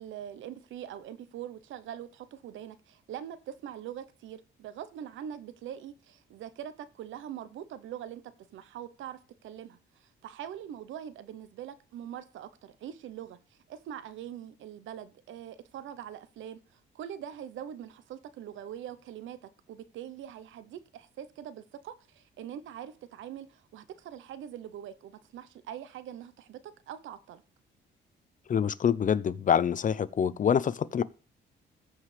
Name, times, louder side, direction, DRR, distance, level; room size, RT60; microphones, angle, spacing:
voice 1, 0.0-8.2 8.5-13.4 13.7-19.4 19.7-27.4, right 10 dB, 80° right, 0.9 m, -43 dB
voice 2, 28.5-31.0, left 8 dB, 40° left, 0.5 m, -26 dB
14.5 x 4.9 x 3.3 m
cardioid pair, 90°, 20 cm